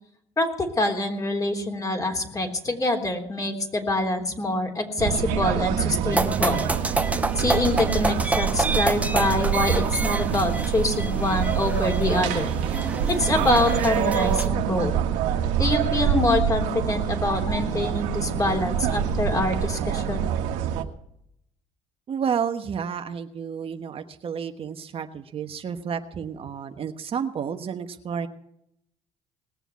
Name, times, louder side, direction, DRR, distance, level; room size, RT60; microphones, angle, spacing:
voice 1, 0.4-6.6 7.4-12.5 13.1-14.9 15.6-20.3, left 2 dB, 25° left, 4 dB, 3.5 m, -25 dB
sound 1, 5.0-20.8, right 9 dB, 85° right, 1.5 m, -26 dB
sound 2, 6.1-14.5, right 2 dB, 10° right, 1.0 m, -29 dB
voice 2, 22.1-28.3, right 7 dB, 50° right, 7 dB, 1.2 m, -31 dB
19.5 x 7.1 x 8.3 m, 0.75 s
supercardioid pair, 85°, 13 cm